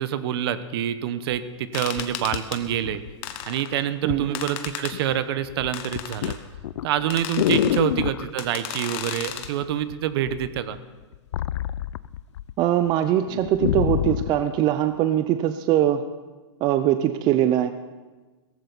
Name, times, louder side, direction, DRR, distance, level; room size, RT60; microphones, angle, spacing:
voice 1, 0.0-3.0 3.4-6.4 6.8-10.8, right 10 dB, 55° right, 13 dB, 1.0 m, -26 dB
sound 1, 1.3-1.4 2.0-3.4 4.1-4.3 4.7-5.1 5.4-8.3 9.4-9.9 10.2-12.5 12.9-13.0 13.3-14.4 15.1-15.2, left 12 dB, 70° left, 0.4 m, -27 dB
sound 2, 1.7-2.6 3.2-3.8 4.3-5.0 5.7-6.4 7.1-7.8 8.4-9.5, left 11 dB, 40° left, 1.2 m, -34 dB
voice 2, 12.6-16.1 16.6-17.7, right 11 dB, 30° right, 10 dB, 0.5 m, -22 dB
17.0 x 15.0 x 4.1 m, 1.3 s
hypercardioid pair, 140°, 15 cm